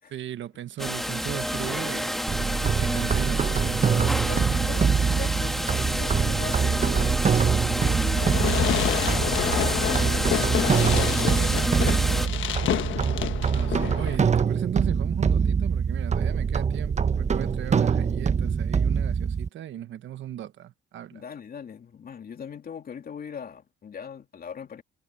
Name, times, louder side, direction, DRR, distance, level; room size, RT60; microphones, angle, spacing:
voice 1, 0.1-4.7 13.5-21.2, right 11 dB, 70° right, 1.4 m, -37 dB
sound 1, 0.8-12.3, equal, ahead, 1.6 m, -29 dB
sound 2, 2.3-19.5, right 6 dB, 35° right, 1.0 m, -24 dB
voice 2, 4.0-8.3 8.6-12.3 13.7-14.0 21.1-24.8, left 7 dB, 50° left, 3.1 m, -40 dB
Fireworks, 8.2-14.2, left 12 dB, 75° left, 1.3 m, -29 dB
cardioid pair, 90°, 20 cm